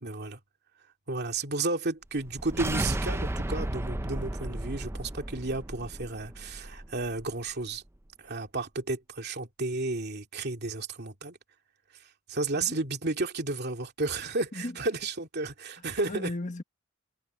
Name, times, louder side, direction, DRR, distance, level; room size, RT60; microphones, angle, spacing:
voice 1, 0.0-0.4 1.1-7.8 8.2-11.4 12.3-16.3, right 3 dB, 55° right, 2.6 m, -32 dB
sound 1, 2.2-7.3, right 1 dB, 10° right, 0.6 m, -34 dB
voice 2, 15.8-16.6, left 2 dB, 40° left, 1.5 m, -37 dB
head